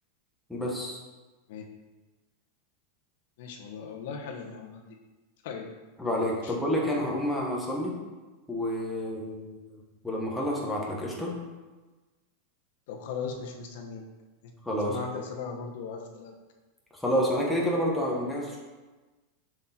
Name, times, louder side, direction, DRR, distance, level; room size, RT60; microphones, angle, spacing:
voice 1, 0.5-1.0 6.0-8.0 8.5-11.3 14.6-15.0 17.0-18.6, equal, ahead, -4 dB, 1.2 m, -29 dB
voice 2, 3.4-5.0 5.4-5.7 6.4-6.5 12.9-14.0 14.4-14.5 14.8-16.4, left 5 dB, 55° left, 2 dB, 1.1 m, -38 dB
6.3 x 6.1 x 4.3 m, 1.2 s
supercardioid pair, 175°, 0 cm